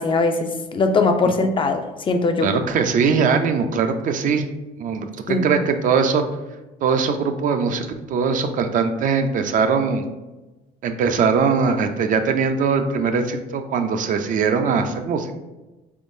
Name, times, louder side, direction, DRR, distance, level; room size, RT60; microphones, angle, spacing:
voice 1, 0.0-2.5 5.3-5.5, left 3 dB, 30° left, 6 dB, 0.3 m, -20 dB
voice 2, 2.4-4.5 4.8-6.2 6.8-10.0 10.8-15.3, right 5 dB, 50° right, 7 dB, 0.4 m, -21 dB
3.7 x 3.5 x 2.6 m, 1.1 s
cardioid pair, 110°, 17 cm